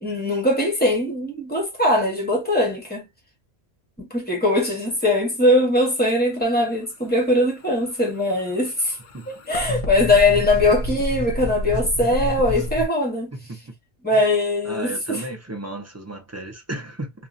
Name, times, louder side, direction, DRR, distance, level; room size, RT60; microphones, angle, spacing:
voice 1, 0.0-3.0 4.0-9.0 9.3-13.3 14.0-15.2, left 1 dB, 10° left, 1.1 m, -21 dB
sound 1, 7.7-12.9, left 1 dB, 50° left, 0.4 m, -29 dB
voice 2, 14.6-17.1, right 2 dB, 20° right, 0.6 m, -34 dB
2.7 x 2.4 x 2.4 m
omnidirectional pair, 1.1 m